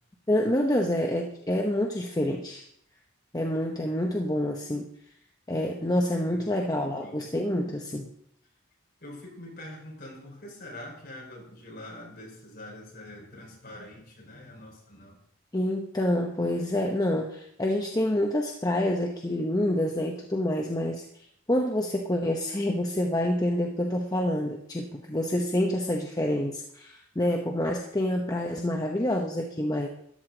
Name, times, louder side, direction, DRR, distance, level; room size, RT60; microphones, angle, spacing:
voice 1, 0.3-2.6 3.3-4.9 5.5-8.1 15.5-21.0 21.5-29.9, left 1 dB, 20° left, 1 dB, 0.8 m, -27 dB
voice 2, 6.2-7.2 9.0-15.2, left 1 dB, 45° left, -2 dB, 4.7 m, -45 dB
13.5 x 11.0 x 3.9 m, 0.70 s
head